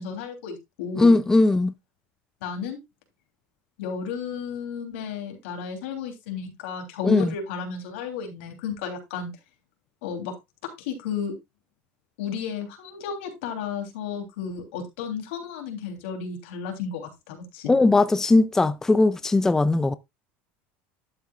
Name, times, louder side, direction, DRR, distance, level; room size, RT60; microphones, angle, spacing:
voice 1, 0.0-1.2 2.4-2.8 3.8-9.3 10.0-10.3 10.8-11.3 12.2-17.7, left 6 dB, 85° left, 3.2 m, -33 dB
voice 2, 1.0-1.7 7.0-7.3 17.7-19.9, left 2 dB, 10° left, 0.4 m, -19 dB
11.5 x 7.7 x 2.4 m
supercardioid pair, 145°, 6 cm